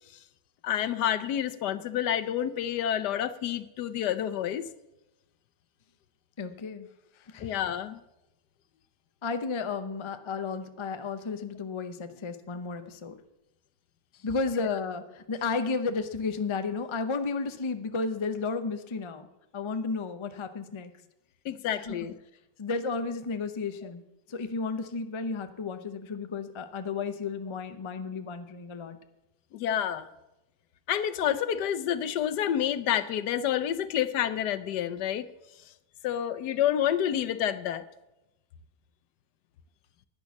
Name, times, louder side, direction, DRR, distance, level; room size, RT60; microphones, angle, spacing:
voice 1, 0.6-4.7 7.4-8.0 21.4-22.1 29.5-30.1 30.9-35.3 36.0-37.8, left 10 dB, 85° left, 12 dB, 1.3 m, -29 dB
voice 2, 6.4-6.9 7.3-7.5 9.2-13.1 14.2-19.3 19.5-20.9 21.8-22.0 22.6-24.0 24.3-29.0, left 4 dB, 35° left, 9 dB, 0.4 m, -33 dB
10.5 x 9.9 x 7.1 m, 0.95 s
omnidirectional pair, 1.7 m